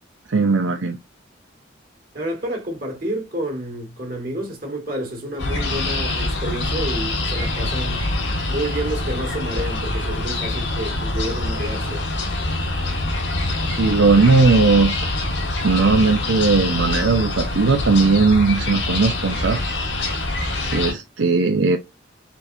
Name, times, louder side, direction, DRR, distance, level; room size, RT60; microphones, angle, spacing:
voice 1, 0.3-1.0 13.6-15.1 15.6-19.6 20.7-21.8, right 4 dB, 75° right, 0.6 m, -18 dB
voice 2, 2.1-8.1 8.5-12.1, right 1 dB, 45° right, 2.0 m, -29 dB
sound 1, 5.4-20.9, left 2 dB, 65° left, 1.5 m, -25 dB
4.5 x 4.3 x 2.7 m
head